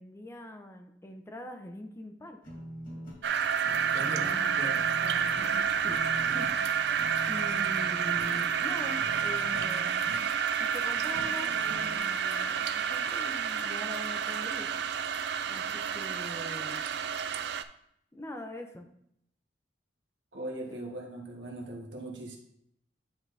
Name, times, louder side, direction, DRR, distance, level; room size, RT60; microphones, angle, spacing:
voice 1, 0.0-2.4 4.0-6.5 7.3-10.1 10.6-11.5 11.9-14.7 15.5-16.8 18.1-18.9 20.6-20.8, left 1 dB, 15° left, 5 dB, 0.6 m, -43 dB
sound 1, 2.4-12.0, equal, 50° left, 2.0 m, -45 dB
sound 2, 3.2-17.6, right 7 dB, 65° right, 0.3 m, -29 dB
voice 2, 3.9-4.2 4.6-4.8 20.3-22.4, right 1 dB, 80° right, 0 dB, 1.4 m, -39 dB
9.9 x 3.8 x 3.3 m, 0.73 s
head